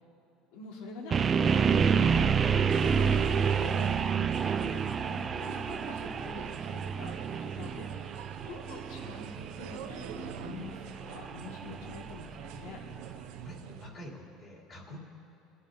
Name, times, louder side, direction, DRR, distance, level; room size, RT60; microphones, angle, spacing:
voice 1, 0.5-2.3 2.8-3.2 3.6-8.2 8.5-9.3 9.6-12.8 14.9-15.0, left 4 dB, 80° left, 0 dB, 1.7 m, -45 dB
sound 1, 1.1-13.1, right 6 dB, 30° right, 0.4 m, -29 dB
sound 2, 2.7-13.9, right 9 dB, 80° right, 0.6 m, -46 dB
voice 2, 13.4-15.0, equal, 30° left, -2 dB, 2.8 m, -47 dB
24.5 x 11.5 x 2.7 m, 2.8 s
cardioid pair, 140°, 0 cm